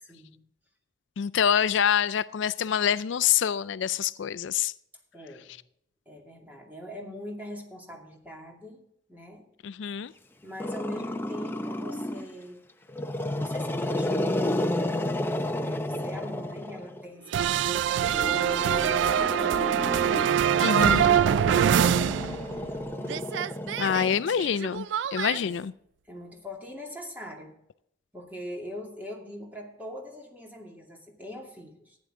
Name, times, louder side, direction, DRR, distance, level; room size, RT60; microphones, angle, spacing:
voice 1, 0.1-0.4 5.1-5.5 6.1-8.8 9.1-9.5 10.4-12.6 13.3-14.6 15.6-19.8 20.6-22.0 25.3-25.6 26.0-27.5 28.1-32.0, left 1 dB, 10° right, 2.4 m, -42 dB
voice 2, 1.2-4.7 9.6-10.1 20.6-21.1 23.8-24.9 25.1-25.7, left 8 dB, 75° left, 0.4 m, -26 dB
Growling, 10.6-12.3 12.9-17.1 18.0-24.6, left 1 dB, 10° left, 0.6 m, -32 dB
sound 1, 17.3-22.8 23.0-25.4, right 9 dB, 70° right, 0.3 m, -24 dB
Singing, 18.0-23.1, equal, 45° right, 4.9 m, -46 dB
14.5 x 9.7 x 3.7 m
head